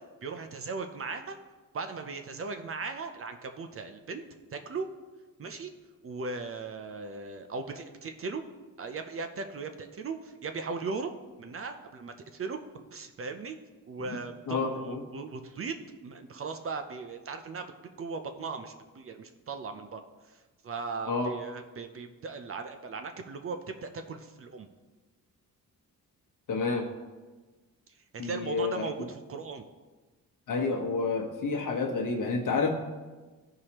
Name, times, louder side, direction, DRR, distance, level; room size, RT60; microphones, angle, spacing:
voice 1, 0.2-1.4 1.7-4.2 4.5-4.9 5.4-5.7 6.0-8.4 8.8-11.1 11.4-12.6 12.9-13.6 13.9-15.8 16.0-17.7 18.0-24.7 28.1-29.6, right 4 dB, 40° right, 6 dB, 0.5 m, -38 dB
voice 2, 14.5-15.0 21.1-21.3 26.5-26.8 28.2-28.8 30.5-32.7, left 4 dB, 65° left, 2 dB, 1.2 m, -29 dB
13.5 x 4.8 x 2.9 m, 1.3 s
wide cardioid pair, 155°, 34 cm